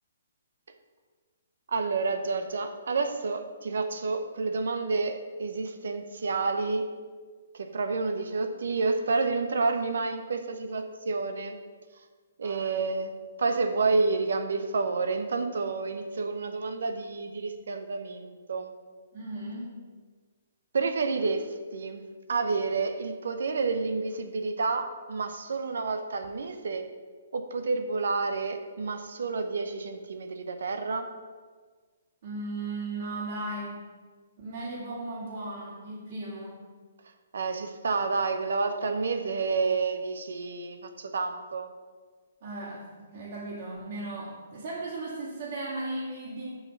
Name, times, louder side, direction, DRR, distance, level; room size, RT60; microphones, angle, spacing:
voice 1, 1.7-6.9 7.5-11.6 12.4-13.1 13.4-18.7 20.7-22.0 22.3-26.9 27.3-31.1 37.3-41.7, right 4 dB, 70° right, 7 dB, 0.7 m, -29 dB
voice 2, 12.4-12.8 19.1-19.9 32.2-33.9 34.4-36.6 42.4-46.5, right 2 dB, 55° right, -9 dB, 2.3 m, -36 dB
5.7 x 5.5 x 6.0 m, 1.5 s
hypercardioid pair, 135°, 0 cm